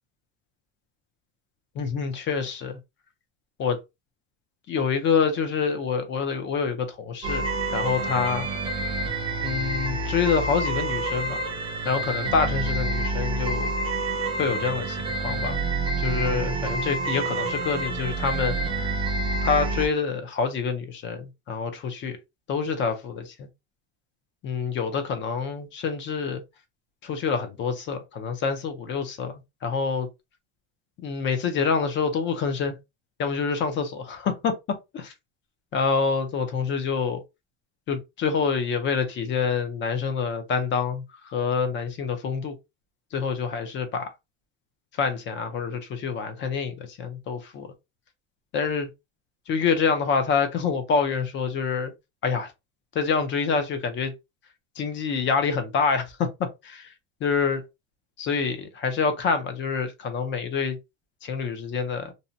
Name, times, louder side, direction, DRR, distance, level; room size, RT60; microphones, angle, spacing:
voice 1, 1.7-2.8 3.6-3.8 4.7-8.5 9.4-11.4 11.8-13.7 14.4-15.6 16.0-18.6 19.4-22.2 22.5-23.5 24.4-26.4 27.0-30.1 31.0-32.8 33.2-35.1 35.7-37.2 37.9-42.5 43.1-44.1 44.9-47.7 48.5-48.9 49.5-51.9 52.2-52.5 52.9-54.1 54.8-56.9 57.2-57.6 58.2-60.8 61.2-62.1, left 5 dB, 30° left, 0.5 m, -26 dB
sound 1, 7.2-19.9, right 2 dB, 15° right, 0.5 m, -28 dB
2.7 x 2.1 x 2.5 m
cardioid pair, 145°, 36 cm